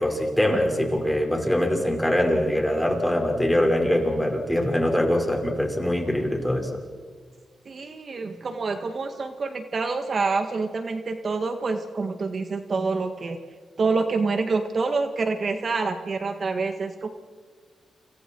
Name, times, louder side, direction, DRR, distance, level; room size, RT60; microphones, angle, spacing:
voice 1, 0.0-6.7, left 1 dB, 5° left, 2 dB, 5.3 m, -23 dB
voice 2, 7.6-13.4 13.8-17.1, right 4 dB, 50° right, 7 dB, 1.7 m, -27 dB
29.5 x 27.0 x 4.6 m, 1.5 s
cardioid pair, 80°, 0 cm